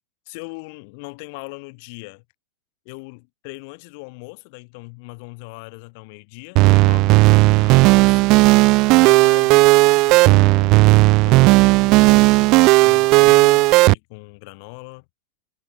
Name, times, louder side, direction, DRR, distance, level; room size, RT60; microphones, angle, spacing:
voice 1, 0.3-2.2 2.8-8.3 8.8-9.6 10.0-10.9 11.2-15.0, left 31 dB, 45° left, 4.3 m, -39 dB
sound 1, 6.6-13.9, right 23 dB, 40° right, 0.3 m, -13 dB
figure-of-eight pair, 90°, 0 cm